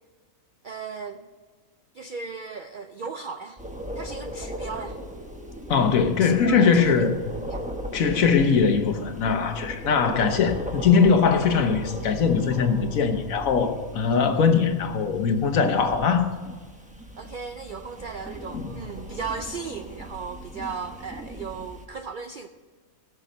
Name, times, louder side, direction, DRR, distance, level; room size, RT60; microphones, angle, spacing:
voice 1, 0.6-1.3 1.9-3.6 4.0-5.0 6.2-7.6 17.2-22.5, right 5 dB, 70° right, 8 dB, 0.4 m, -36 dB
sound 1, 3.6-21.9, equal, 5° right, 1.0 m, -38 dB
voice 2, 5.7-7.2 7.9-16.3 18.5-18.7, left 6 dB, 80° left, 7 dB, 1.4 m, -21 dB
17.5 x 6.4 x 5.2 m, 1.5 s
omnidirectional pair, 1.4 m